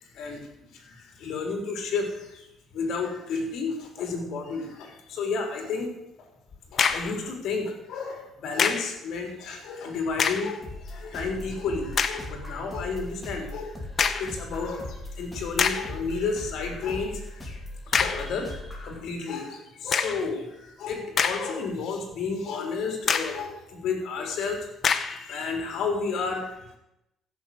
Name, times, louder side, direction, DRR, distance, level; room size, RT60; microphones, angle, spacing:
voice 1, 0.7-2.5 2.7-5.9 6.2-6.3 6.7-17.6 17.9-24.7 25.0-26.6, left 4 dB, 65° left, 3 dB, 3.7 m, -32 dB
sound 1, 6.5-7.2 8.6-9.0 10.1-10.6 11.2-11.3 12.0-12.3 14.0-14.4 15.1-15.2 15.6-16.0 17.9-18.3 19.9-20.3 20.9-21.7 22.1-22.2 23.1-23.5 24.8-25.2, left 6 dB, 40° left, 0.9 m, -26 dB
sound 2, 10.6-19.0, left 1 dB, 10° left, 2.9 m, -39 dB
15.0 x 7.0 x 7.8 m, 0.87 s
cardioid pair, 135°, 0 cm